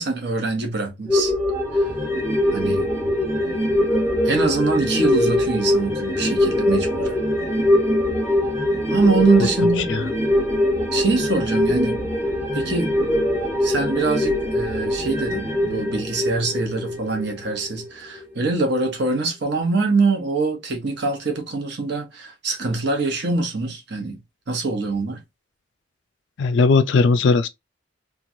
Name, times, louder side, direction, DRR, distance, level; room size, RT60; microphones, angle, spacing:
voice 1, 0.0-1.4 1.7-1.9 2.5-2.9 4.2-7.1 8.9-9.9 10.9-12.0 12.5-12.9 13.6-24.2 24.5-25.2, right 3 dB, 60° right, 1.0 m, -23 dB
sound 1, 1.1-17.9 18.2-18.3, left 1 dB, 15° right, 0.8 m, -22 dB
voice 2, 9.8-10.1 26.4-27.5, left 4 dB, 70° left, 0.3 m, -18 dB
3.0 x 2.4 x 2.6 m
head